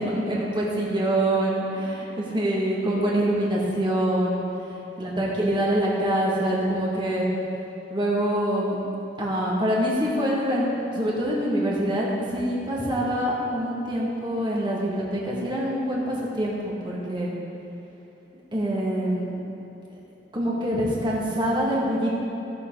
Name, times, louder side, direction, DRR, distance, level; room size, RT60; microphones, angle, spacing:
voice 1, 0.0-4.4 5.0-7.3 7.9-8.8 9.2-10.7 10.9-17.3 18.5-19.3 20.3-22.1, right 1 dB, 25° right, -6 dB, 2.3 m, -25 dB
17.0 x 7.0 x 4.1 m, 3.0 s
head